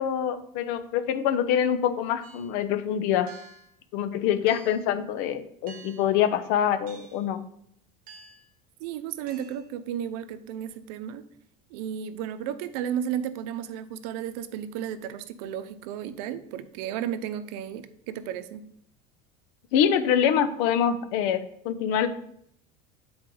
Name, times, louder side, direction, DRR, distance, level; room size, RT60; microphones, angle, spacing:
voice 1, 0.0-3.3 3.9-7.4 19.7-22.1, left 9 dB, 70° left, 11 dB, 0.7 m, -25 dB
sound 1, 2.2-2.5 3.3-3.8 4.5-4.8 5.7-6.1 6.9-7.3 8.1-8.5 9.3-9.7, right 5 dB, 45° right, 1.3 m, -49 dB
voice 2, 8.8-11.2 11.7-18.7, right 9 dB, 75° right, 11 dB, 0.7 m, -33 dB
9.1 x 4.3 x 3.9 m, 0.70 s
cardioid pair, 140°, 20 cm